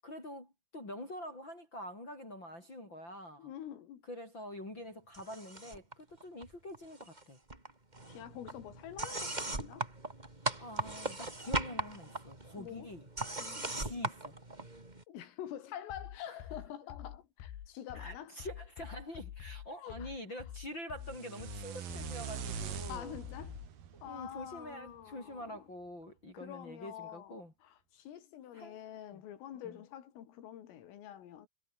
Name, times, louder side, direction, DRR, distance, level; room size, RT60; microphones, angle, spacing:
voice 1, 0.0-3.5 4.1-7.4 10.6-13.1 13.7-14.3 16.2-16.4 17.9-23.2 24.0-27.5 28.5-28.8 29.1-29.2 29.6-29.8, left 1 dB, 20° left, 6.3 m, -46 dB
voice 2, 3.4-4.0 8.1-9.9 12.6-13.0 13.4-13.8 15.1-18.4 19.8-20.1 22.9-23.6 24.0-25.7 26.3-31.5, left 10 dB, 75° left, 5.3 m, -47 dB
sound 1, 5.1-5.9 6.2-7.2 7.5-15.0, right 2 dB, 15° right, 1.6 m, -39 dB
sound 2, 15.9-23.7, left 11 dB, 60° left, 4.0 m, -47 dB
sound 3, 21.0-25.1, right 9 dB, 50° right, 3.5 m, -44 dB
omnidirectional pair, 5.9 m